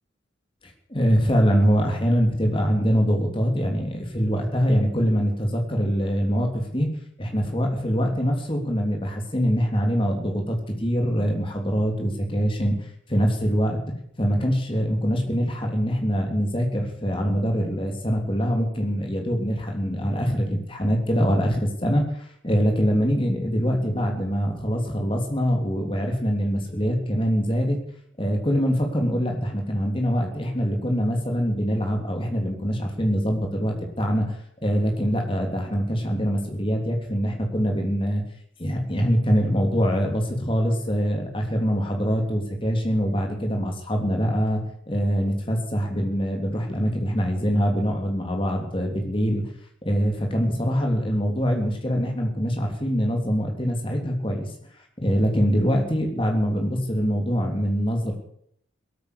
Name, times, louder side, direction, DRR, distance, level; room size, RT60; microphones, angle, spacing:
voice 1, 0.9-6.9 7.2-12.7 13.1-13.8 14.2-27.8 28.2-34.3 34.6-38.2 38.6-44.6 44.9-49.5 49.8-54.5 55.0-58.1, equal, 25° left, 2 dB, 3.4 m, -24 dB
18.0 x 9.3 x 8.3 m, 0.67 s
head